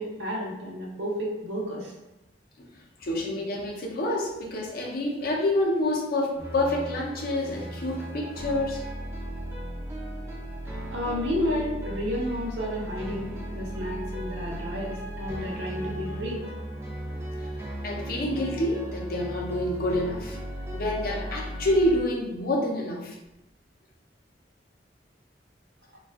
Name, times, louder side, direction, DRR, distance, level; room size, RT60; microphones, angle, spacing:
voice 1, 0.0-1.9 10.9-16.4, left 1 dB, 70° right, -2 dB, 0.6 m, -31 dB
voice 2, 3.0-8.8 17.4-17.5 17.8-20.4 20.7-23.2, left 1 dB, 55° left, -1 dB, 0.5 m, -27 dB
sound 1, 6.4-22.0, right 1 dB, 15° right, 0.4 m, -36 dB
2.5 x 2.3 x 2.3 m, 0.95 s
head